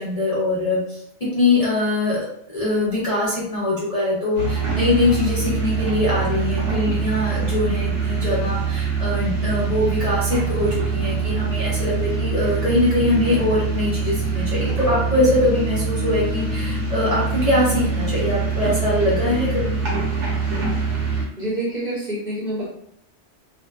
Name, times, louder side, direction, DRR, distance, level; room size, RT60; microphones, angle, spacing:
voice 1, 0.0-2.3 2.5-19.8, left 2 dB, 45° left, -9 dB, 0.5 m, -22 dB
sound 1, 4.4-21.2, right 4 dB, 75° right, 1.1 m, -24 dB
voice 2, 21.4-22.6, right 1 dB, 40° right, -7 dB, 0.9 m, -27 dB
2.6 x 2.1 x 2.3 m, 0.71 s
omnidirectional pair, 1.2 m